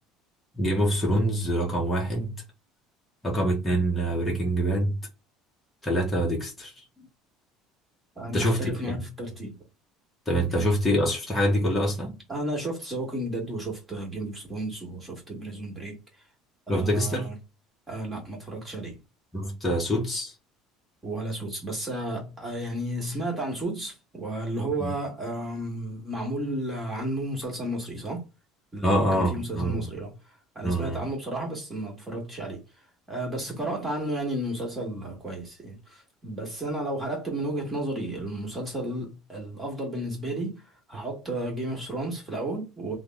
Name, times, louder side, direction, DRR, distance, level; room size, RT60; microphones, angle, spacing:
voice 1, 0.5-2.4 3.2-5.0 5.8-6.7 8.3-9.0 10.3-12.2 16.7-17.3 19.3-20.3 24.8-24.9 28.8-29.9 30.6-31.0, equal, 5° left, 1.0 m, -25 dB
voice 2, 8.1-9.5 10.5-10.6 12.3-16.0 16.7-17.4 17.9-19.0 21.0-28.2 28.7-32.6 33.1-40.6 40.9-42.9, right 1 dB, 15° right, 1.4 m, -33 dB
3.4 x 2.0 x 3.4 m
cardioid pair, 150°, 0 cm